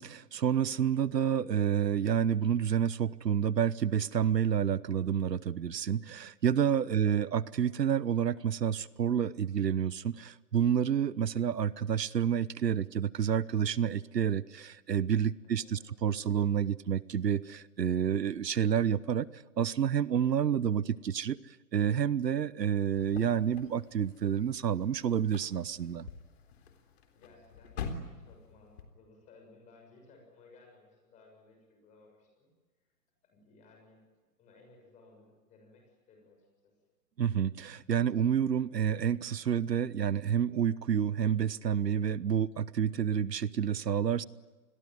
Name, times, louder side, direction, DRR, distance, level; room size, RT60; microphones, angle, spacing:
voice 1, 0.0-26.1 37.2-44.2, right 8 dB, 85° right, 19 dB, 1.1 m, -29 dB
voice 2, 15.4-15.9 27.1-27.8 28.2-32.5 33.2-34.0 34.4-36.7, left 3 dB, 15° left, 2 dB, 6.8 m, -59 dB
sound 1, 22.9-28.8, left 5 dB, 40° left, 3.8 m, -46 dB
28.0 x 21.5 x 9.5 m, 1.3 s
hypercardioid pair, 160°, 48 cm